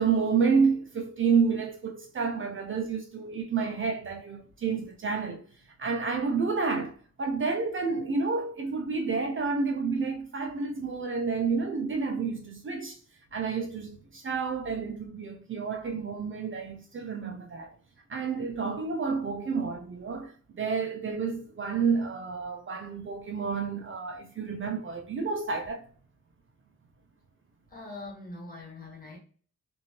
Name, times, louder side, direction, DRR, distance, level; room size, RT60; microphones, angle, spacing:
voice 1, 0.0-5.4 5.8-13.0 13.3-17.8 18.1-25.9, right 5 dB, 45° right, 0.4 m, -29 dB
voice 2, 27.7-29.2, left 2 dB, 30° left, 1.2 m, -43 dB
2.9 x 2.6 x 2.8 m
wide cardioid pair, 165°, 29 cm